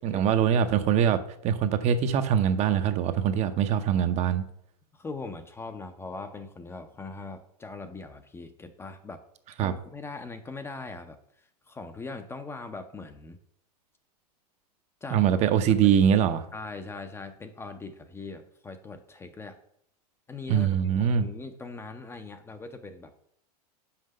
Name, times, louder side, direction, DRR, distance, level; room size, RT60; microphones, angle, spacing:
voice 1, 0.0-4.4 9.6-9.7 15.1-16.4 20.5-21.3, right 8 dB, 35° right, 9 dB, 0.7 m, -23 dB
voice 2, 4.9-9.2 9.6-13.4 15.0-15.2 16.5-19.6 20.3-23.2, left 3 dB, 10° left, 8 dB, 0.6 m, -41 dB
5.8 x 4.7 x 6.4 m, 0.68 s
hypercardioid pair, 115°, 20 cm